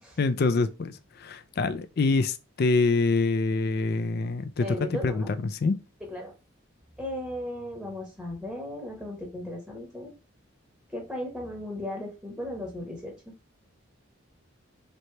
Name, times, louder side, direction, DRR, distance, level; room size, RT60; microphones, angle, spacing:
voice 1, 0.2-5.7, left 3 dB, 45° left, 0.4 m, -26 dB
voice 2, 4.6-5.3 6.0-6.3 7.0-10.1 10.9-13.3, left 1 dB, 5° right, 0.9 m, -36 dB
3.2 x 2.8 x 4.3 m
head